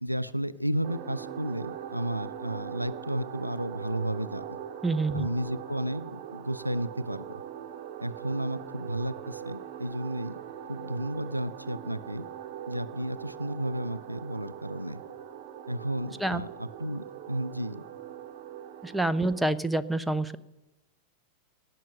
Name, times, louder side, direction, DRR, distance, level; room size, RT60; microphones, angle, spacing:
voice 1, 0.0-4.6 5.1-7.4 8.0-10.3 10.7-12.3 12.7-15.0 15.7-17.8, right 1 dB, 90° right, 16 dB, 0.5 m, -33 dB
sound 1, 0.8-19.4, right 9 dB, 45° right, 1.2 m, -42 dB
voice 2, 4.8-5.3 16.2-16.4 18.8-20.4, right 2 dB, 5° right, 12 dB, 0.6 m, -27 dB
18.0 x 6.1 x 9.9 m, 0.96 s
figure-of-eight pair, 90°, 0 cm